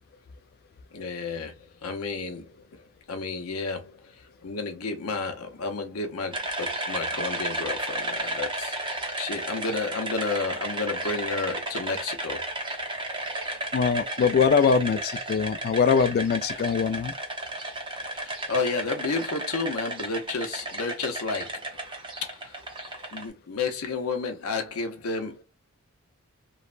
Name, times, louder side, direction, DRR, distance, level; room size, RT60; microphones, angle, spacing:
voice 1, 0.9-2.7 3.1-12.4 18.1-21.7 22.2-22.5 23.1-25.4, left 4 dB, 90° left, 0.7 m, -32 dB
sound 1, 6.3-23.2, right 1 dB, 25° right, 0.6 m, -33 dB
voice 2, 13.7-17.1, left 6 dB, 45° left, 0.3 m, -22 dB
3.1 x 2.1 x 2.4 m
head